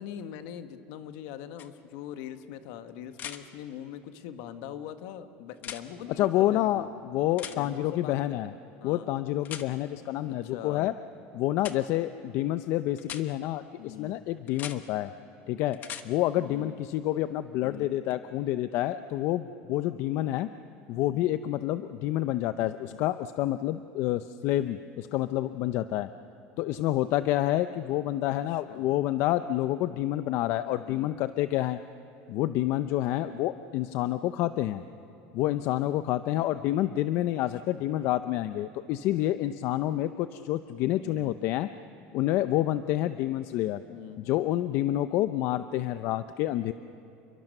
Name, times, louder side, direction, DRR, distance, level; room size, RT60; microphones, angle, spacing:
voice 1, 0.0-6.9 7.5-8.5 8.8-9.1 10.2-10.9 13.8-14.2 16.4-16.8 17.6-17.9 21.1-21.3 22.8-23.0 28.5-28.9 30.8-31.1 37.7-37.9 41.0-41.3 43.9-44.2, left 10 dB, 75° left, 9 dB, 1.4 m, -42 dB
sound 1, 1.6-1.7 3.1-3.4 5.6-5.8 7.4-7.6 9.4-9.7 11.6-11.8 13.0-13.2 14.5-14.8 15.7-16.1 18.1-18.2, left 9 dB, 40° left, 1.2 m, -39 dB
voice 2, 6.2-8.5 8.8-10.9 11.3-15.1 15.5-15.8 16.0-20.5 20.9-26.1 26.6-31.8 32.3-34.8 35.3-41.7 42.1-43.8 44.2-46.7, left 14 dB, 55° left, 12 dB, 0.6 m, -28 dB
29.0 x 23.0 x 6.7 m, 3.0 s
cardioid pair, 155°, 5 cm